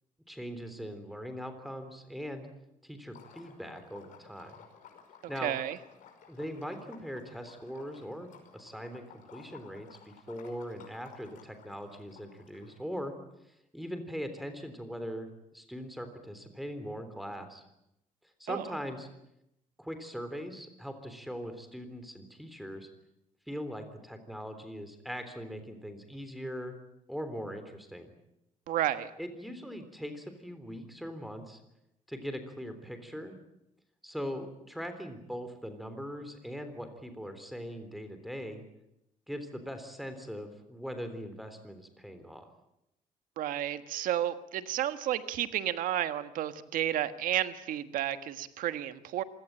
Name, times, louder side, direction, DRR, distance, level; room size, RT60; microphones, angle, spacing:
voice 1, 0.3-2.5 2.8-4.6 5.3-5.6 6.3-13.1 13.7-17.6 18.4-19.1 19.8-22.9 23.5-26.7 27.1-28.1 29.2-31.6 32.1-33.3 34.0-38.6 39.3-42.5, equal, ahead, 8 dB, 3.6 m, -41 dB
Liquid, 3.1-13.0, left 7 dB, 75° left, 5.6 m, -56 dB
voice 2, 5.4-5.8 18.5-18.6 28.7-29.1 43.4-49.2, right 12 dB, 90° right, 11 dB, 1.5 m, -32 dB
26.5 x 17.5 x 8.9 m, 0.84 s
cardioid pair, 145°, 14 cm